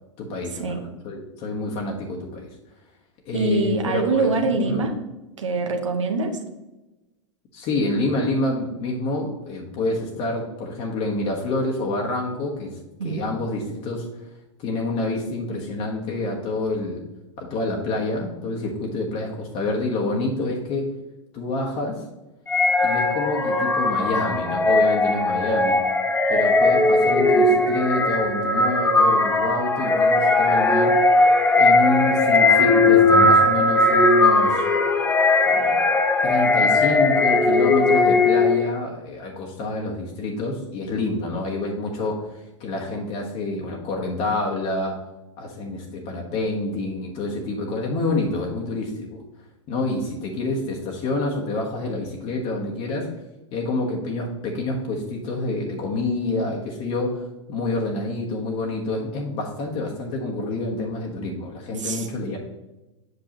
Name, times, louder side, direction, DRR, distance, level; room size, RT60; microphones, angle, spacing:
voice 1, 0.2-2.5 3.3-4.8 7.5-12.8 13.0-14.1 14.6-17.0 17.4-20.9 21.3-22.0 22.8-25.8 26.3-31.0 31.6-34.6 35.5-35.8 36.2-45.0 45.4-49.2 49.7-53.1 53.5-62.4, left 2 dB, 40° left, -1 dB, 1.4 m, -27 dB
voice 2, 3.3-4.9 5.4-6.3 13.0-13.2 61.8-62.1, right 3 dB, 75° right, 3 dB, 1.1 m, -24 dB
sound 1, 22.5-38.7, left 2 dB, 10° left, 0.8 m, -18 dB
7.9 x 6.1 x 3.0 m, 1.0 s
figure-of-eight pair, 95°, 16 cm